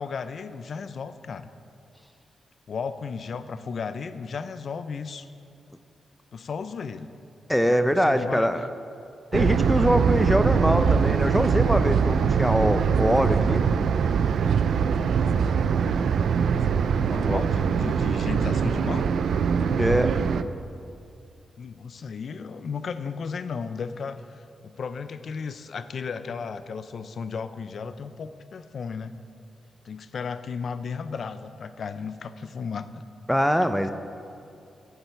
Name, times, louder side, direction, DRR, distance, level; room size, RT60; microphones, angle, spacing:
voice 1, 0.0-1.5 2.7-5.3 6.3-7.1 7.7-8.5 16.9-19.1 21.6-29.2 29.8-33.0, left 5 dB, 60° left, 12 dB, 0.5 m, -34 dB
voice 2, 7.5-8.7 9.3-13.6 17.3-17.4 19.8-20.2 33.3-33.9, equal, ahead, 9 dB, 0.5 m, -23 dB
sound 1, 9.3-20.4, right 6 dB, 80° right, 0.4 m, -22 dB
14.5 x 8.1 x 4.6 m, 2.6 s
cardioid pair, 95°, 0 cm